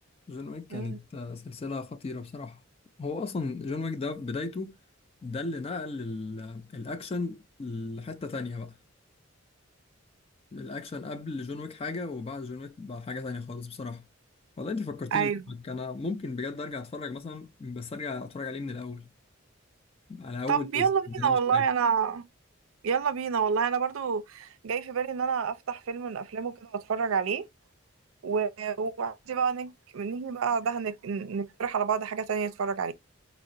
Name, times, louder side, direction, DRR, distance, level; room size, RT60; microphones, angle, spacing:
voice 1, 0.3-2.6 3.0-4.8 5.2-8.8 10.5-14.1 14.6-19.1 20.1-21.7, left 3 dB, 30° left, 0.3 m, -36 dB
voice 2, 15.1-15.4 20.5-22.2 22.8-27.4 28.2-32.9, right 6 dB, 85° right, 0.4 m, -28 dB
4.7 x 2.0 x 2.5 m
head